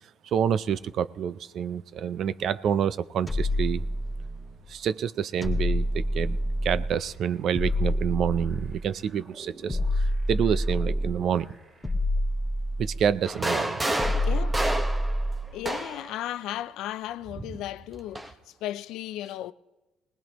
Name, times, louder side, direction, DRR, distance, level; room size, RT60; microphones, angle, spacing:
voice 1, 0.2-3.8 4.7-9.8 10.3-11.6 12.8-13.8, right 8 dB, 60° right, 0.5 m, -28 dB
sound 1, 3.3-4.6 5.4-7.0 7.5-9.0 9.7-11.3 11.8-13.2 14.0-15.6, equal, 15° left, 2.1 m, -27 dB
sound 2, 6.9-11.9, right 3 dB, 40° right, 2.4 m, -49 dB
sound 3, 13.2-16.1 17.3-18.3, right 1 dB, 20° right, 1.3 m, -30 dB
voice 2, 14.3-14.7 15.5-18.3 18.6-19.5, left 13 dB, 75° left, 0.4 m, -35 dB
20.5 x 19.0 x 3.0 m
supercardioid pair, 80°, 0 cm